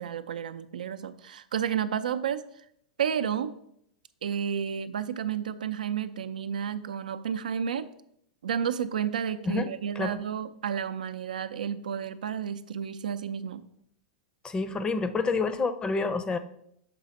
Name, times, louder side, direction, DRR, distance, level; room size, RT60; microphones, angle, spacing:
voice 1, 0.0-2.4 3.0-3.5 4.2-7.9 8.4-13.6, right 8 dB, 75° right, 11 dB, 0.5 m, -31 dB
voice 2, 14.4-16.4, left 4 dB, 20° left, 11 dB, 0.6 m, -28 dB
6.0 x 4.0 x 5.2 m, 0.72 s
hypercardioid pair, 100°, 4 cm